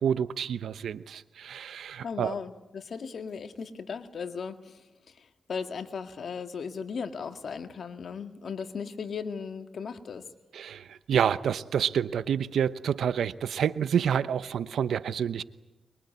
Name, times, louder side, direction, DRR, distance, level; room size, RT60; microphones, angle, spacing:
voice 1, 0.0-2.3 10.5-15.4, right 8 dB, 90° right, 14 dB, 0.9 m, -28 dB
voice 2, 2.0-10.2, left 6 dB, 70° left, 8 dB, 1.9 m, -37 dB
24.0 x 23.0 x 9.6 m, 1.0 s
cardioid pair, 60°, 0 cm